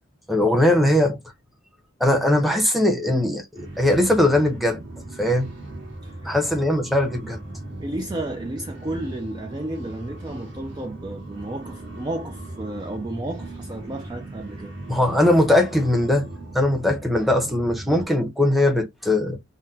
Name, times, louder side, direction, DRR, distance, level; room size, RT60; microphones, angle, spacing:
voice 1, 0.3-1.2 2.0-4.8 5.2-5.5 6.2-7.4 14.9-16.3 16.5-19.4, left 1 dB, ahead, 0.8 m, -20 dB
sound 1, 3.5-18.1, right 2 dB, 60° right, 1.8 m, -38 dB
voice 2, 6.0-6.7 7.8-14.7, right 1 dB, 20° right, 0.4 m, -32 dB
5.6 x 2.1 x 2.7 m
head